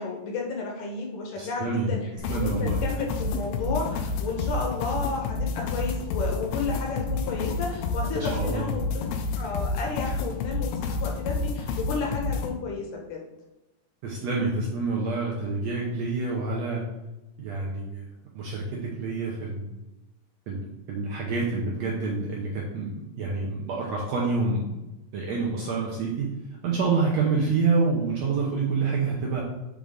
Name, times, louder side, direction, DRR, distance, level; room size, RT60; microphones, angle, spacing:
voice 1, 0.0-2.0 2.3-9.1 9.3-13.2, left 4 dB, 75° left, 0 dB, 2.3 m, -32 dB
voice 2, 1.4-1.9 2.3-2.8 8.1-8.7 14.0-16.8 17.4-18.0 18.3-19.7 20.5-24.8 25.1-26.3 26.6-29.4, right 4 dB, 75° right, -3 dB, 1.6 m, -27 dB
sound 1, 2.2-12.5, left 3 dB, 90° left, 2.4 m, -29 dB
7.5 x 3.8 x 3.5 m, 1.0 s
omnidirectional pair, 4.1 m